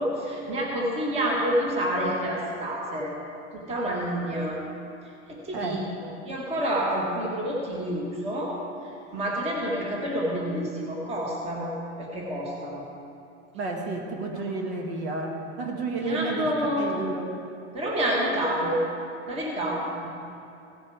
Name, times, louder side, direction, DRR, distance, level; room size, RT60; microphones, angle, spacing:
voice 1, 0.0-3.1 3.5-4.6 5.3-5.8 6.2-8.6 9.1-12.8 14.3-14.4 16.0-16.9 17.7-18.8 19.3-19.8, equal, 15° right, -2 dB, 1.4 m, -28 dB
voice 2, 5.5-5.9 13.5-17.4 20.0-20.1, right 3 dB, 60° right, 2 dB, 1.8 m, -31 dB
16.0 x 7.0 x 4.8 m, 2.7 s
supercardioid pair, 160°, 37 cm